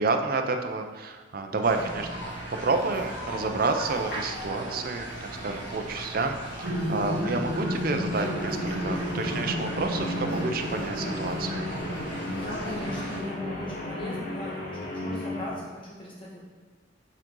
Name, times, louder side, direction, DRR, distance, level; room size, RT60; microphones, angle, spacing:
voice 1, 0.0-2.3 2.6-11.7, right 3 dB, 50° right, 5 dB, 0.6 m, -29 dB
sound 1, 1.6-13.2, right 1 dB, 85° left, 1.9 m, -38 dB
voice 2, 1.7-2.0 12.3-16.4, left 1 dB, 30° left, -6 dB, 1.6 m, -39 dB
sound 2, 6.6-15.7, equal, 75° right, 0.9 m, -34 dB
Guitar, 8.1-15.5, left 1 dB, 55° left, 1.2 m, -35 dB
7.4 x 3.9 x 3.8 m, 1.4 s
head